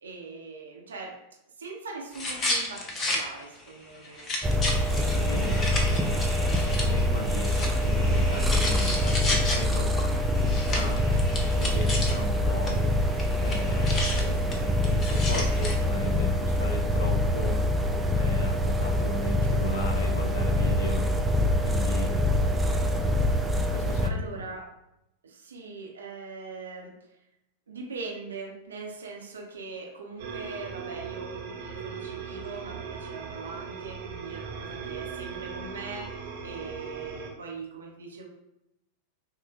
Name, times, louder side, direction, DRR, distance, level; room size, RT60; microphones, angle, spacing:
voice 1, 0.0-1.1 1.6-4.3 24.0-24.7 25.2-26.9 27.7-38.3, right 4 dB, 70° right, -1 dB, 0.9 m, -41 dB
sound 1, 2.1-3.2 3.6-3.7 4.0-12.4 12.6-12.7 13.0-15.8, left 2 dB, 25° left, 0.8 m, -33 dB
sound 2, 4.4-24.1, left 1 dB, 10° right, 0.4 m, -25 dB
voice 2, 4.9-6.2 6.8-10.1 10.4-11.0 11.4-12.8 13.4-17.6 18.1-21.1 21.6-22.1 23.6-24.4, left 2 dB, 65° left, 2 dB, 0.8 m, -37 dB
sound 3, 30.2-37.3, right 6 dB, 50° right, 1.1 m, -38 dB
5.6 x 2.4 x 2.3 m, 0.86 s
figure-of-eight pair, 90°, 0 cm